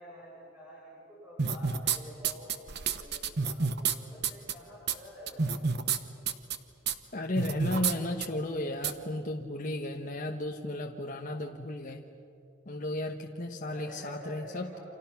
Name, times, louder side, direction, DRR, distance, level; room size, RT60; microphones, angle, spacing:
voice 1, 0.0-5.6 13.7-14.8, equal, 10° right, -7 dB, 7.7 m, -49 dB
sound 1, 1.4-2.0 2.2-3.9 4.2-4.5 4.9-5.0 5.3-6.0 6.3-6.6 6.9-7.0 7.4-7.9 8.2-8.3 8.8-8.9, right 6 dB, 55° right, 1.1 m, -29 dB
voice 2, 7.1-12.0 12.7-14.8, left 1 dB, 40° left, 2 dB, 1.2 m, -34 dB
30.0 x 26.5 x 5.9 m, 2.8 s
head